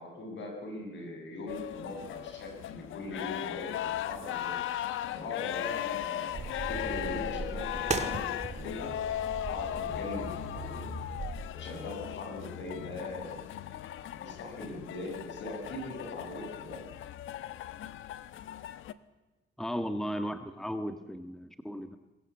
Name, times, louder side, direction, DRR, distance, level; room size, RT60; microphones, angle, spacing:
voice 1, 0.0-4.6 5.1-8.9 9.5-11.0 11.5-13.5 14.1-16.9, left 2 dB, 65° left, 3 dB, 7.9 m, -41 dB
sound 1, 1.5-18.9, left 12 dB, 85° left, 1.1 m, -37 dB
sound 2, 6.3-11.5, right 4 dB, 35° right, 2.0 m, -38 dB
voice 2, 19.6-22.0, equal, ahead, 8 dB, 1.7 m, -35 dB
23.0 x 21.5 x 8.5 m, 1.1 s
cardioid pair, 90°, 20 cm